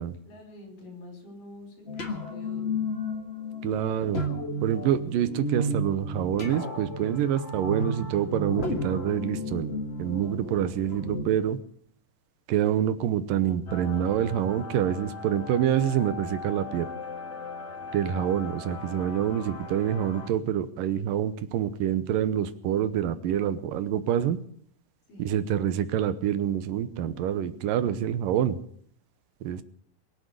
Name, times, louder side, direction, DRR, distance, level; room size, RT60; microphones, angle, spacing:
voice 1, 0.2-2.9 25.1-25.3, left 2 dB, 70° left, 4 dB, 6.3 m, -47 dB
sound 1, 1.9-11.2, left 1 dB, 45° left, 0.8 m, -33 dB
voice 2, 3.6-4.3 4.6-9.7 10.0-11.6 12.5-16.9 17.9-24.4 25.2-28.6 29.4-29.6, right 10 dB, 80° right, 13 dB, 2.6 m, -26 dB
sound 2, 13.7-20.3, left 4 dB, 25° left, 1.7 m, -39 dB
22.5 x 7.8 x 8.0 m, 0.63 s
omnidirectional pair, 4.0 m